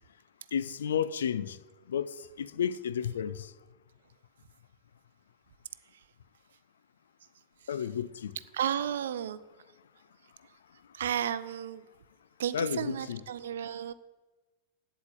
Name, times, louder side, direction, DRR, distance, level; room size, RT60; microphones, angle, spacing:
voice 1, 0.5-1.6 1.9-3.5 7.7-8.3 12.5-13.2, left 8 dB, 65° left, 0.5 m, -32 dB
voice 2, 8.5-9.4 10.9-11.8 12.4-13.9, right 9 dB, 60° right, 0.5 m, -33 dB
8.9 x 8.0 x 8.7 m
figure-of-eight pair, 90°, 0 cm